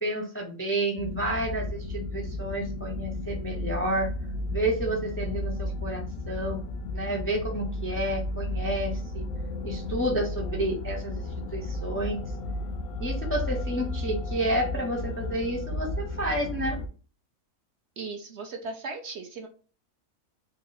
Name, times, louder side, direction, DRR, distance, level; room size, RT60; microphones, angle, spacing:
voice 1, 0.0-4.1 4.5-6.6 6.9-9.3 9.6-12.2 13.0-16.8, right 1 dB, 20° left, 0 dB, 0.4 m, -30 dB
sound 1, 1.0-16.9, left 2 dB, 85° left, 1.0 m, -33 dB
voice 2, 18.0-19.5, right 3 dB, 60° right, 2 dB, 0.8 m, -37 dB
3.8 x 2.0 x 3.8 m, 0.38 s
omnidirectional pair, 1.5 m